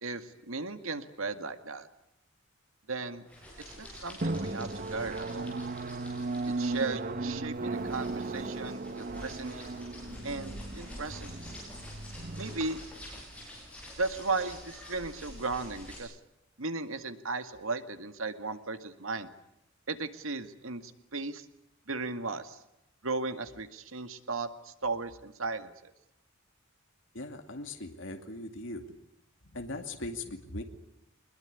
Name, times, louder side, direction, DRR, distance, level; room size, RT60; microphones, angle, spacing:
voice 1, 0.0-1.9 2.9-3.2 3.8-5.5 6.6-9.7 10.2-11.3 12.4-12.8 14.0-16.2 16.6-19.3 19.9-21.5 21.9-22.6 23.0-25.9, right 3 dB, 85° right, 9 dB, 2.0 m, -36 dB
sound 1, 3.3-16.0, equal, 5° left, 7.2 m, -47 dB
Drum, 4.2-13.5, right 2 dB, 45° right, 1.1 m, -36 dB
voice 2, 27.1-28.9 29.4-30.6, left 2 dB, 65° left, 5 dB, 2.4 m, -39 dB
24.0 x 21.5 x 9.9 m, 0.85 s
head